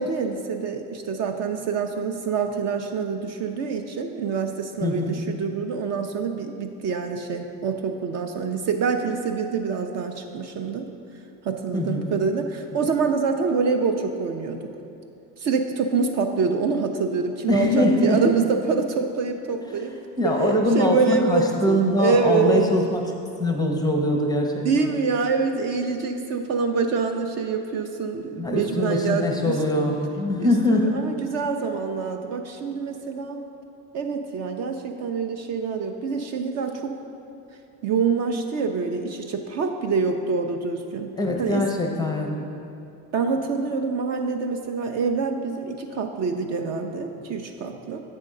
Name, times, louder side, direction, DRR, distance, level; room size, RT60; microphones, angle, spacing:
voice 1, 0.0-10.9 11.4-14.6 15.4-19.9 20.2-22.7 24.6-29.6 30.4-33.4 33.9-37.0 37.8-41.1 41.4-41.6 43.1-48.0, right 5 dB, 45° right, 5 dB, 0.4 m, -26 dB
voice 2, 4.8-5.2 11.7-12.1 17.5-18.2 20.2-23.0 23.4-24.9 28.4-30.9 41.2-42.3, left 1 dB, 10° left, 1 dB, 0.5 m, -22 dB
7.6 x 3.6 x 6.4 m, 2.7 s
cardioid pair, 125°, 39 cm